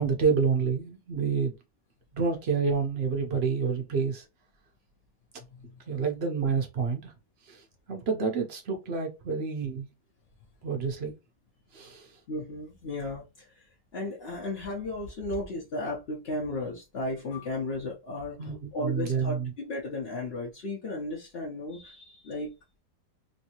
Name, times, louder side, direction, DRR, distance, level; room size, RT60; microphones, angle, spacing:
voice 1, 0.0-1.5 2.2-4.2 5.9-7.1 7.5-7.6 7.9-9.9 10.6-11.1 11.7-12.1 18.4-19.5, right 5 dB, 55° right, 0.7 m, -28 dB
voice 2, 5.5-5.8 12.3-13.7 13.9-22.5, left 2 dB, 55° left, 0.7 m, -35 dB
3.2 x 2.7 x 2.8 m
omnidirectional pair, 1.9 m